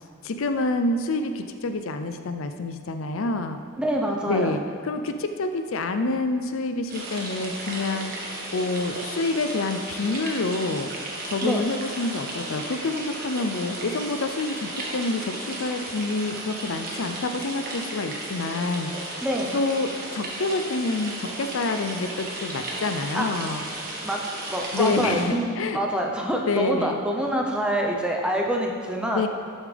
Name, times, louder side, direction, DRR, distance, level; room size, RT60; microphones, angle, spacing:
voice 1, 0.0-3.6 4.3-8.1 8.5-10.9 11.3-19.3 19.5-23.6 24.7-25.8 26.5-27.0 29.1-29.3, left 3 dB, 70° left, 8 dB, 0.5 m, -27 dB
voice 2, 3.8-4.6 11.4-11.6 19.2-19.6 23.1-23.3 24.0-24.2 24.5-29.2, equal, 5° right, 0 dB, 0.8 m, -26 dB
sound 1, 6.9-25.2, right 2 dB, 45° right, 1.6 m, -35 dB
12.5 x 7.2 x 3.4 m, 2.2 s
head